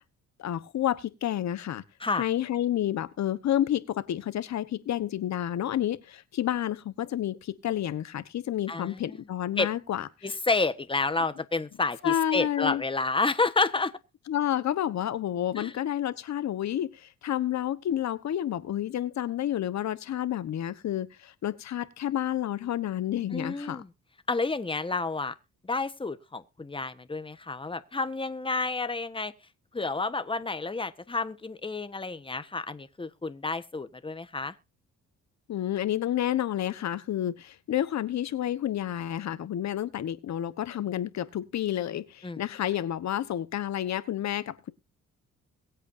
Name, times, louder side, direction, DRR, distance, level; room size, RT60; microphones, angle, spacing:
voice 1, 0.4-1.8 2.1-10.3 12.0-12.8 14.3-23.8 35.5-44.7, left 11 dB, 65° left, 1.3 m, -30 dB
voice 2, 8.7-9.2 9.6-9.7 10.2-13.9 15.5-15.7 23.3-23.9 24.3-25.3 25.6-29.3 29.7-34.5 42.2-42.4, left 3 dB, 15° left, 1.3 m, -30 dB
22.5 x 8.3 x 2.7 m
cardioid pair, 90°, 30 cm